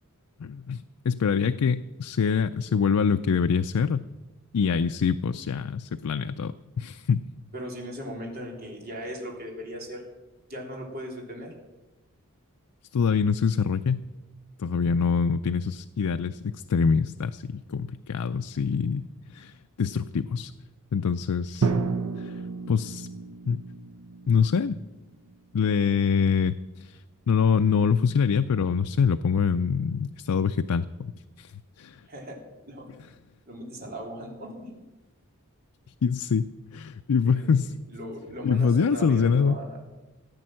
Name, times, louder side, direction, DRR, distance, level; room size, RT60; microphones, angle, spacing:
voice 1, 0.4-4.1 4.5-7.3 12.9-14.1 14.6-19.0 19.3-20.5 20.9-21.7 22.2-22.4 22.7-23.1 23.5-23.6 24.3-24.8 25.5-27.0 27.3-31.1 31.4-31.5 31.8-32.0 36.0-37.7 38.4-39.6, left 6 dB, 80° left, 9 dB, 0.4 m, -25 dB
voice 2, 7.5-10.0 10.5-11.5 32.1-32.4 32.7-32.9 33.5-34.7 37.2-39.8, equal, 45° right, -1 dB, 3.5 m, -38 dB
Drum, 21.6-25.4, right 4 dB, 85° right, 0.9 m, -31 dB
15.0 x 9.3 x 7.6 m, 1.1 s
head